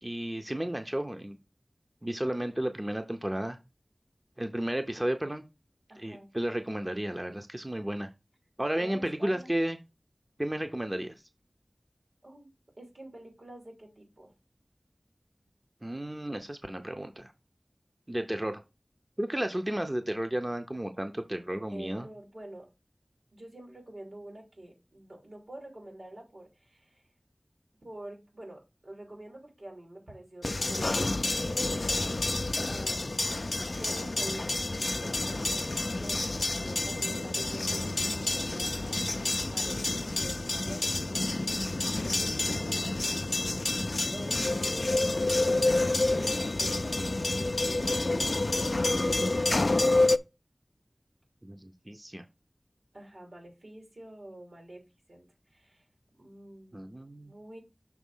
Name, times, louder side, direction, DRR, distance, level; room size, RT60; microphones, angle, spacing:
voice 1, 0.0-1.4 2.0-3.6 4.4-5.4 6.0-8.1 8.6-9.8 10.4-11.1 15.8-17.3 18.1-18.6 19.2-22.1 43.7-44.1 51.4-52.2 56.7-57.3, right 1 dB, 25° right, 6 dB, 0.7 m, -33 dB
voice 2, 5.9-6.3 8.8-9.5 12.2-12.5 12.8-14.3 21.7-22.7 23.3-27.0 27.8-31.7 32.7-33.3 33.8-41.8 42.5-43.2 44.1-48.9 49.3-49.9 52.9-54.8 55.1-55.3 55.5-55.8 56.1-56.8 57.2-57.6, right 1 dB, 85° right, 0 dB, 3.2 m, -47 dB
sound 1, 30.4-50.2, left 2 dB, 65° left, 0.3 m, -29 dB
6.2 x 3.7 x 5.5 m, 0.27 s
wide cardioid pair, 50°, 0 cm